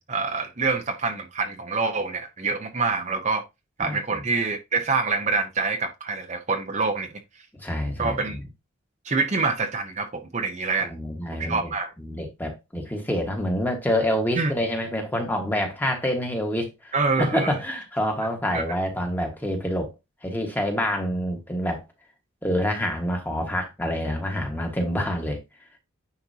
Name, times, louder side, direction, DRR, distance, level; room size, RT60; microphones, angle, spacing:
voice 1, 0.0-3.4 3.8-7.1 8.0-8.4 9.0-10.9 11.3-11.9 14.4-14.5 16.9-17.6 18.5-18.6, right 4 dB, 35° right, 0.7 m, -26 dB
voice 2, 3.8-4.2 7.5-8.4 10.8-11.7 12.0-19.9 20.2-21.8 22.4-25.4, equal, 10° left, 1.4 m, -27 dB
9.8 x 4.3 x 2.8 m
head